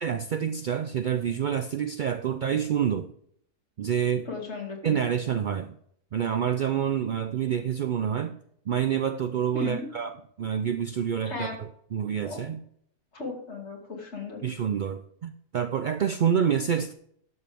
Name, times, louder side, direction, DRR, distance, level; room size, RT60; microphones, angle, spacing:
voice 1, 0.0-3.1 3.8-4.3 4.8-5.8 6.1-8.4 8.7-12.6 14.4-16.9, right 8 dB, 90° right, 10 dB, 0.4 m, -27 dB
voice 2, 4.2-5.1 9.5-9.9 11.3-11.6 12.2-12.4 13.1-14.4, left 3 dB, 55° left, -1 dB, 2.8 m, -36 dB
12.0 x 7.2 x 3.5 m, 0.66 s
omnidirectional pair, 1.4 m